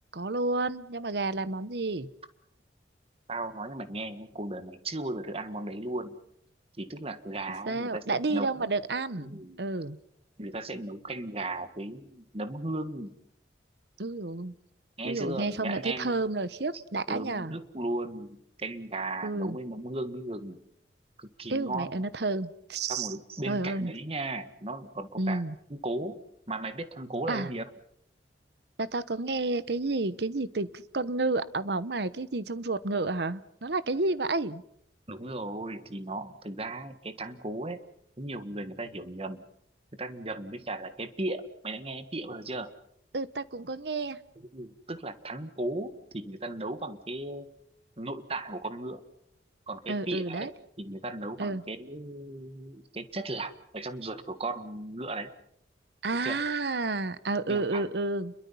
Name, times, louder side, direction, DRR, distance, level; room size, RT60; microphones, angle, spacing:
voice 1, 0.1-2.1 7.7-10.0 14.0-14.5 15.0-17.5 19.2-19.6 21.5-23.1 23.5-23.9 25.2-25.5 27.3-27.5 28.8-34.6 43.1-44.2 49.9-50.5 51.4-51.6 56.0-58.3, right 3 dB, 65° right, 15 dB, 1.0 m, -30 dB
voice 2, 3.3-6.2 6.8-8.7 9.2-9.6 10.4-13.1 15.0-16.2 17.1-20.6 21.2-22.0 22.8-25.4 25.7-26.2 26.5-27.6 35.1-37.8 38.2-39.4 40.0-42.7 44.5-47.5 48.0-49.1 49.7-50.5 50.8-55.3 56.2-56.4 57.4-57.9, right 2 dB, 35° right, 11 dB, 1.6 m, -36 dB
29.5 x 22.5 x 5.6 m, 0.72 s
head